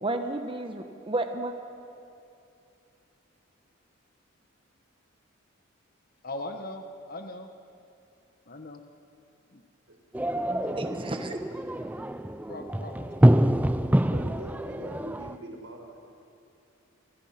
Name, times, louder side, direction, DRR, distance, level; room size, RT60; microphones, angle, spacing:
voice 1, 0.0-1.5 10.8-11.4, right 2 dB, 25° right, 6 dB, 1.2 m, -32 dB
voice 2, 6.2-7.5 8.5-8.8 9.5-9.6 12.5-13.5, left 2 dB, 45° left, 6 dB, 1.4 m, -40 dB
sound 1, 10.1-15.3, right 1 dB, 10° right, 0.5 m, -25 dB
voice 3, 10.6-11.6 14.1-16.0, right 1 dB, 75° right, 2 dB, 4.6 m, -44 dB
29.0 x 24.0 x 5.9 m, 2.7 s
head